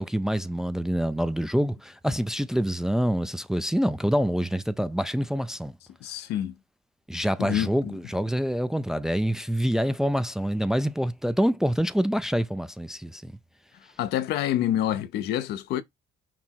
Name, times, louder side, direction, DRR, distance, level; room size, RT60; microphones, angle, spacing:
voice 1, 0.0-5.7 7.1-13.3, equal, 5° right, 0.3 m, -26 dB
voice 2, 6.0-6.5 7.4-7.9 14.0-15.8, left 12 dB, 75° left, 0.6 m, -27 dB
5.9 x 2.0 x 4.4 m
cardioid pair, 110°, 17 cm